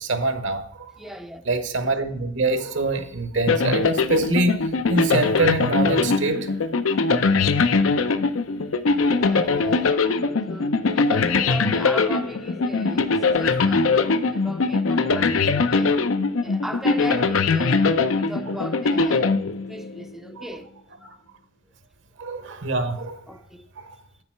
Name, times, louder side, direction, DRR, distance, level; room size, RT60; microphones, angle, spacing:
voice 1, 0.0-0.9 1.5-6.5 9.5-9.6 20.4-20.5 21.0-21.1 22.2-23.2 23.8-24.0, right 2 dB, 65° right, 1.1 m, -25 dB
voice 2, 1.0-1.4 6.8-7.1 8.7-16.0 16.4-20.7 23.3-23.7, equal, ahead, 0.4 m, -37 dB
sound 1, 3.5-20.0, left 4 dB, 90° left, 0.6 m, -21 dB
8.2 x 6.8 x 4.5 m
head